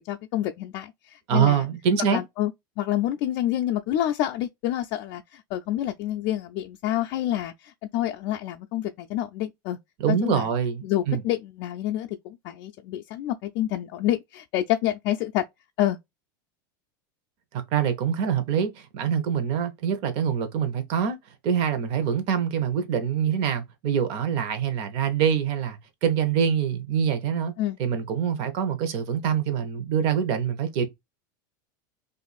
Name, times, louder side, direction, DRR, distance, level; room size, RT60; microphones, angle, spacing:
voice 1, 0.1-1.7 2.1-2.5 2.8-9.8 10.1-10.5 10.8-15.4 15.8-16.0 27.6-27.8, left 13 dB, 55° left, 0.4 m, -28 dB
voice 2, 1.3-2.2 10.0-11.2 17.5-21.2 21.4-27.5 27.8-30.9, right 8 dB, 55° right, 0.8 m, -25 dB
2.5 x 2.4 x 3.9 m
supercardioid pair, 130°, 11 cm